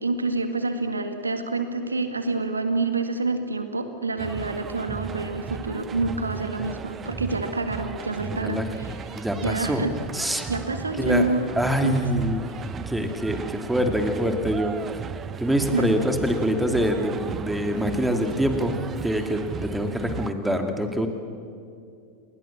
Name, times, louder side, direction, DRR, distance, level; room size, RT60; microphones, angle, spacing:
voice 1, 0.0-11.5 11.8-12.1 12.5-12.6 15.7-16.0, right 3 dB, 90° right, 8 dB, 1.9 m, -28 dB
sound 1, 4.2-20.3, right 7 dB, 25° right, 0.8 m, -36 dB
voice 2, 8.3-8.7 9.1-9.9 10.1-10.5 11.0-11.3 11.6-12.4 12.7-14.8 15.4-18.7 19.0-21.1, equal, 5° right, 5 dB, 2.5 m, -25 dB
29.5 x 20.0 x 7.3 m, 2.4 s
figure-of-eight pair, 90°, 0 cm